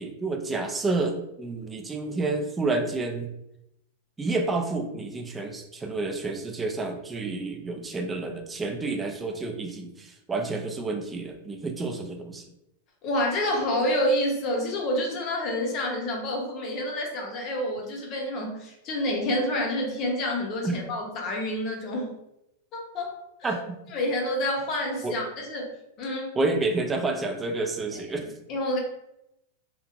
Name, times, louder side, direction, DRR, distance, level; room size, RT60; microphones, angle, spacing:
voice 1, 0.0-3.3 4.2-12.4 20.6-20.8 23.4-23.8 25.0-25.1 26.4-28.3, right 3 dB, 15° right, 3 dB, 0.4 m, -29 dB
voice 2, 13.0-22.1 22.7-23.6 23.9-26.3 27.9-28.2 28.5-28.8, left 1 dB, 40° left, 0 dB, 0.8 m, -28 dB
2.8 x 2.4 x 2.5 m, 0.83 s
hypercardioid pair, 125°, 0 cm